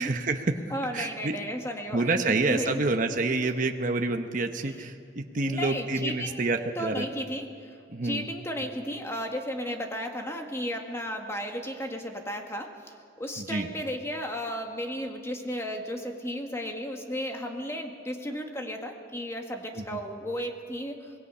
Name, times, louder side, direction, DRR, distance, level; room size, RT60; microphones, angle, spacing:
voice 1, 0.0-0.5 0.9-1.3 1.9-7.1 7.9-8.2 13.4-13.7, right 3 dB, 45° right, 5 dB, 1.0 m, -28 dB
voice 2, 0.7-2.8 3.2-3.5 4.6-4.9 5.3-21.1, equal, 15° left, 3 dB, 1.7 m, -34 dB
25.5 x 20.0 x 5.6 m, 2.3 s
head